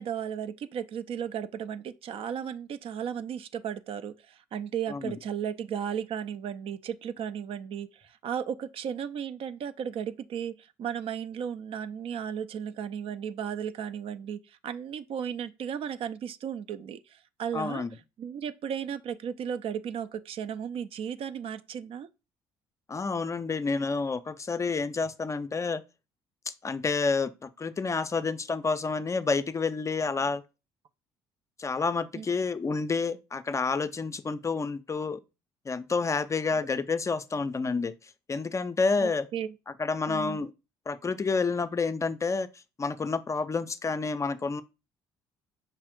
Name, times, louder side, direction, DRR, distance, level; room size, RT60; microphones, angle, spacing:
voice 1, 0.0-17.8 18.2-22.1 32.1-32.3 39.0-39.5 40.1-40.4, right 8 dB, 55° right, 0.4 m, -35 dB
voice 2, 17.5-17.9 22.9-25.8 26.5-30.4 31.6-35.2 35.7-37.9 38.3-39.3 39.8-40.5 40.9-42.5 42.8-44.6, left 4 dB, 25° left, 0.4 m, -29 dB
5.5 x 2.4 x 3.5 m
hypercardioid pair, 60°, 11 cm